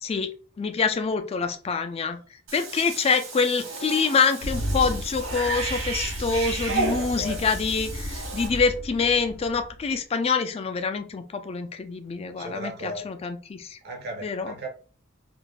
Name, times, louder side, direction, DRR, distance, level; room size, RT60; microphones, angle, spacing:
voice 1, 0.6-2.2 2.5-13.8 14.2-14.5, left 5 dB, 30° left, 0.3 m, -26 dB
Cat / Bathtub (filling or washing), 2.5-8.5, right 3 dB, 75° right, 1.0 m, -33 dB
Engine starting, 4.4-10.0, equal, 80° left, 0.5 m, -34 dB
voice 2, 6.8-7.4 12.4-13.1 13.8-14.7, right 1 dB, 55° right, 0.6 m, -36 dB
2.4 x 2.1 x 3.2 m
head